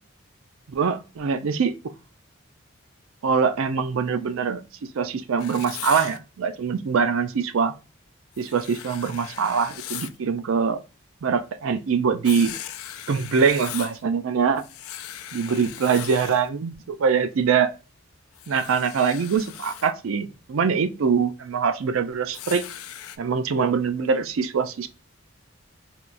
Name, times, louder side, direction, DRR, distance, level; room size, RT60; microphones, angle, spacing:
voice 1, 0.7-1.7 3.2-4.6 5.0-7.7 8.4-10.8 11.2-12.5 13.1-14.6 15.3-17.7 18.5-22.7 23.2-24.9, right 6 dB, 70° right, 0.4 m, -23 dB
Writing, 5.4-6.2 8.3-10.2 12.2-14.0 14.6-16.5 18.3-19.9 22.3-23.2, left 11 dB, 85° left, 0.4 m, -38 dB
4.3 x 2.3 x 2.5 m
head